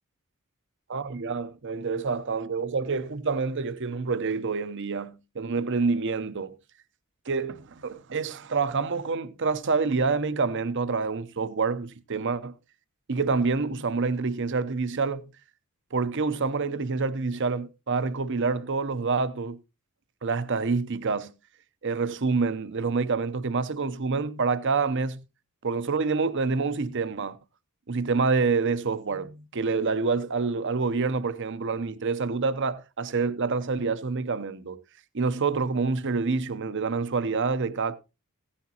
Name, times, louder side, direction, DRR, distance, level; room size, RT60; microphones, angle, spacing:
voice 1, 0.9-6.6 7.3-12.5 13.1-15.3 15.9-19.6 20.2-21.3 21.8-25.2 25.6-27.4 27.9-34.8 35.1-38.0, right 4 dB, 55° right, 0.7 m, -27 dB
16.0 x 9.9 x 2.9 m
head